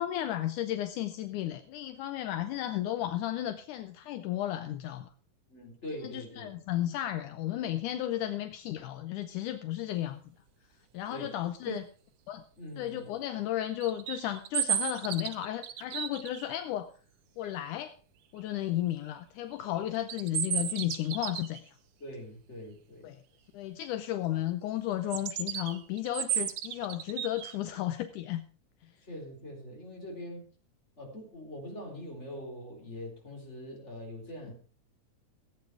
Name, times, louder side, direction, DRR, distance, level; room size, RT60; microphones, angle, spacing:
voice 1, 0.0-5.1 6.0-10.2 10.9-11.8 12.3-12.4 12.8-16.9 17.4-17.9 18.3-21.8 23.0-23.2 23.5-28.4, left 13 dB, 80° left, 10 dB, 2.2 m, -34 dB
voice 2, 5.5-6.5 11.1-11.3 11.7-11.8 12.6-13.1 22.0-23.1 29.0-30.5 31.0-34.5, equal, 20° left, 1 dB, 4.3 m, -43 dB
sound 1, 13.8-16.5 19.9-21.6 25.1-27.6, right 10 dB, 65° right, 1.4 m, -33 dB
16.0 x 9.1 x 4.8 m, 0.39 s
omnidirectional pair, 3.7 m